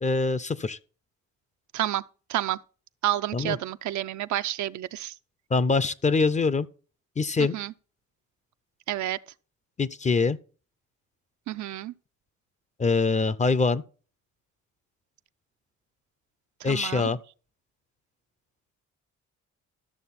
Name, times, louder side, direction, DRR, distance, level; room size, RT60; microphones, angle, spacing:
voice 1, 0.0-0.8 3.3-3.6 5.5-6.7 7.2-7.5 9.8-10.4 12.8-13.8 16.6-17.2, left 4 dB, 25° left, 0.6 m, -24 dB
voice 2, 3.0-5.1 7.5-7.7 8.9-9.2 11.5-11.9 16.6-17.1, right 13 dB, 70° right, 0.6 m, -29 dB
13.0 x 6.6 x 4.2 m
cardioid pair, 90°, 30 cm